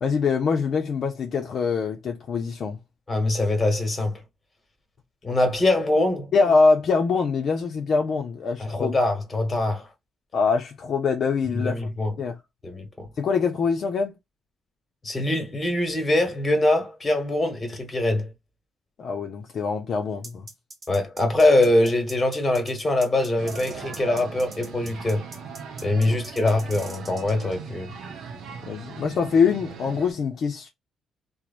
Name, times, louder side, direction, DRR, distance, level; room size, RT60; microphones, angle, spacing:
voice 1, 0.0-2.8 6.3-9.0 10.3-11.8 12.2-12.4 13.2-14.1 19.0-20.5 26.4-26.5 28.6-30.7, left 5 dB, 60° left, 0.5 m, -24 dB
voice 2, 3.1-4.2 5.2-6.3 8.6-9.9 11.5-12.1 12.6-13.1 15.0-18.3 20.9-25.3 25.8-27.9, left 2 dB, 25° left, 1.1 m, -23 dB
sound 1, 20.2-27.6, right 3 dB, 40° right, 0.8 m, -43 dB
sound 2, 23.4-30.1, right 5 dB, 75° right, 0.7 m, -39 dB
3.0 x 2.0 x 2.4 m
cardioid pair, 90°, 0 cm